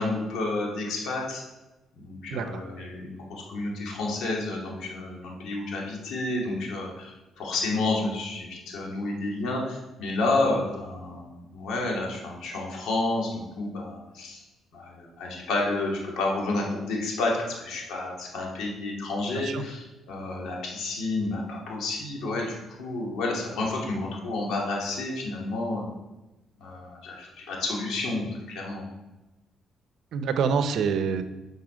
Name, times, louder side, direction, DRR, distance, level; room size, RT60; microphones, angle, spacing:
voice 1, 0.0-1.4 2.0-14.4 14.7-25.9 26.6-28.9, left 2 dB, 80° left, -2 dB, 2.6 m, -30 dB
voice 2, 2.3-2.6 19.3-19.6 30.1-31.2, right 6 dB, 75° right, 9 dB, 0.8 m, -26 dB
9.3 x 5.7 x 5.2 m, 1.0 s
cardioid pair, 90°, 0 cm